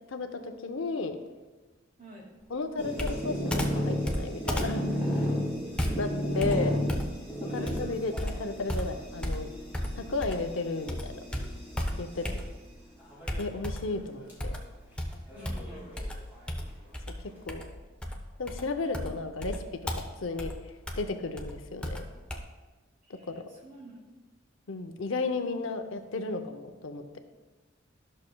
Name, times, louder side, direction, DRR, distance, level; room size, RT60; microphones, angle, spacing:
voice 1, 0.1-1.2 2.5-4.8 6.0-6.1 6.4-6.8 7.5-9.5 10.0-11.1 12.0-12.2 13.4-14.5 17.5-17.6 18.4-19.5 20.2-20.5 21.0-22.1 23.3-23.4 24.7-27.0, left 3 dB, 75° left, 7 dB, 0.7 m, -33 dB
voice 2, 2.0-2.3 5.7-6.1 7.5-7.8 12.1-12.4 15.4-15.8 23.0-24.0, equal, 45° right, -2 dB, 2.1 m, -48 dB
sound 1, 2.8-12.2 13.0-13.5 13.9-14.0 14.3-14.4 15.3-16.4, equal, 10° right, 2.3 m, -34 dB
Computer keyboard, 3.0-10.6 10.9-12.8 13.3-14.0 14.4-22.4, equal, 5° left, 0.6 m, -35 dB
13.0 x 6.4 x 2.3 m, 1.2 s
head